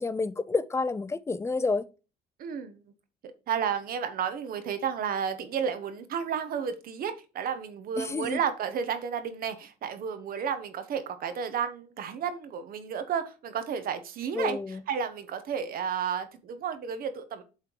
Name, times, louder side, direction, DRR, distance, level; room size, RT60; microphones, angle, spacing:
voice 1, 0.0-1.9 8.0-8.4 14.3-14.8, left 3 dB, 15° left, 0.5 m, -29 dB
voice 2, 2.4-2.8 3.5-17.4, right 7 dB, 60° right, 1.2 m, -32 dB
8.2 x 3.6 x 4.6 m
cardioid pair, 110°, 17 cm